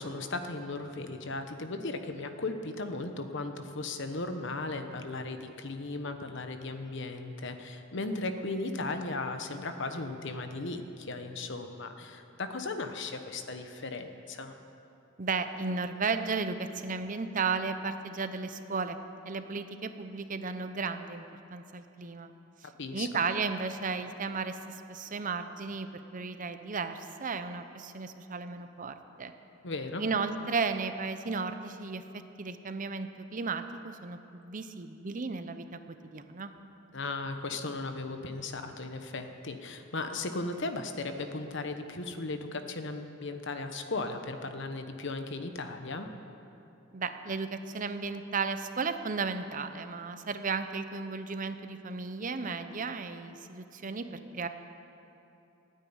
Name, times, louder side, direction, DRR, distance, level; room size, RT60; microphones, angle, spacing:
voice 1, 0.0-14.5 22.8-23.1 29.6-30.0 36.9-46.1, left 3 dB, 65° left, 7 dB, 1.1 m, -36 dB
voice 2, 15.2-19.0 19.3-21.2 21.5-22.3 22.6-29.3 30.0-36.5 46.9-54.5, right 4 dB, 40° right, 9 dB, 0.7 m, -34 dB
14.5 x 9.3 x 9.6 m, 2.8 s
head